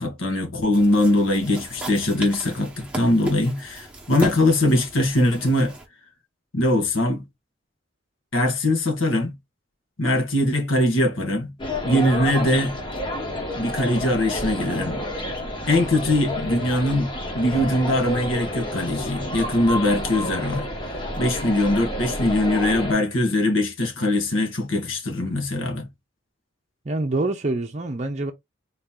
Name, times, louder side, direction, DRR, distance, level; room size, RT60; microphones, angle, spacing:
voice 1, 0.0-5.8 6.5-7.2 8.3-9.3 10.0-11.5 11.8-12.8 13.5-15.0 15.7-17.1 17.3-20.7 21.2-25.9, left 1 dB, 90° left, 1.3 m, -22 dB
sound 1, 0.7-5.9, right 2 dB, 5° right, 0.9 m, -36 dB
sound 2, 11.6-22.9, left 1 dB, 25° left, 1.0 m, -30 dB
voice 2, 26.8-28.3, right 2 dB, 35° right, 0.6 m, -26 dB
4.0 x 2.8 x 3.6 m
head